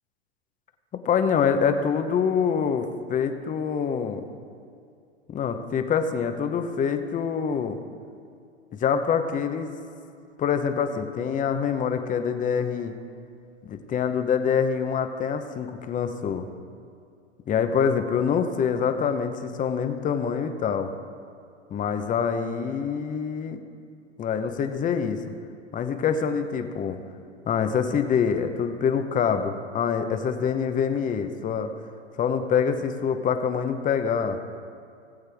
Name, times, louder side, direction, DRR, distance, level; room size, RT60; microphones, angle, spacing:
voice 1, 1.0-4.3 5.3-7.8 8.7-9.7 10.4-13.0 13.6-16.4 17.5-20.9 21.7-23.6 24.2-25.2 25.7-27.0 27.5-31.7 32.2-34.4, left 7 dB, 20° left, 8 dB, 0.8 m, -25 dB
18.5 x 8.1 x 3.5 m, 2.4 s
hypercardioid pair, 115°, 36 cm